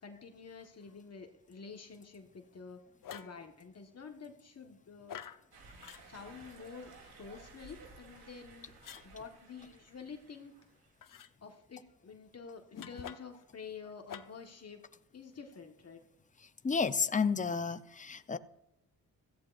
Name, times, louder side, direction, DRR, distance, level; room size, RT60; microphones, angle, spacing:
voice 1, 0.0-2.8 3.1-5.2 6.0-6.9 7.2-8.7 9.0-10.5 11.4-14.8 15.1-16.0, left 5 dB, 45° left, 4 dB, 1.4 m, -49 dB
sound 1, 3.0-3.4 5.1-5.4 5.8-6.0 8.8-9.1 11.0-11.3 12.7-13.4 14.1-14.5, left 9 dB, 60° left, 0.9 m, -47 dB
sound 2, 5.5-10.9, right 3 dB, 90° right, 3.3 m, -56 dB
voice 2, 16.6-18.4, left 5 dB, 20° left, 12 dB, 0.7 m, -31 dB
16.0 x 14.5 x 2.5 m, 0.86 s
cardioid pair, 90°, 36 cm